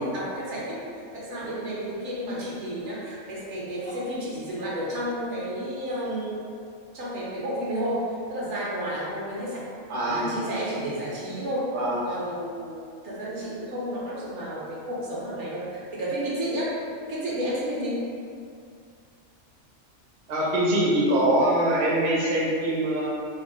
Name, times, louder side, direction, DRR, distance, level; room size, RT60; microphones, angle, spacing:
voice 1, 0.0-6.4 6.9-9.6 10.0-11.7 12.1-16.7 17.1-18.0, equal, 70° right, -6 dB, 0.9 m, -31 dB
voice 2, 9.9-10.4 11.7-12.0 20.3-23.1, right 1 dB, 50° right, -6 dB, 0.6 m, -23 dB
3.4 x 2.3 x 2.5 m, 2.3 s
omnidirectional pair, 1.3 m